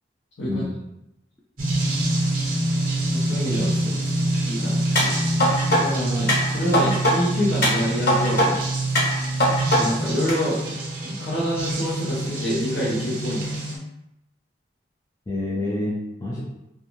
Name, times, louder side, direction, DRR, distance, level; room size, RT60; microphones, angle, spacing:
voice 1, 0.5-0.8 3.6-4.4 15.3-16.4, left 2 dB, 20° left, -4 dB, 0.3 m, -29 dB
sound 1, 1.6-13.8, right 2 dB, 50° right, 0.6 m, -26 dB
voice 2, 3.1-3.7 4.4-5.1 5.7-8.6 9.8-13.6, equal, 75° left, -8 dB, 0.7 m, -27 dB
sound 2, 5.0-5.8 6.3-7.1 7.6-8.5 9.0-9.8 10.3-10.4, equal, 50° left, 1.1 m, -21 dB
2.5 x 2.2 x 3.0 m, 0.87 s
head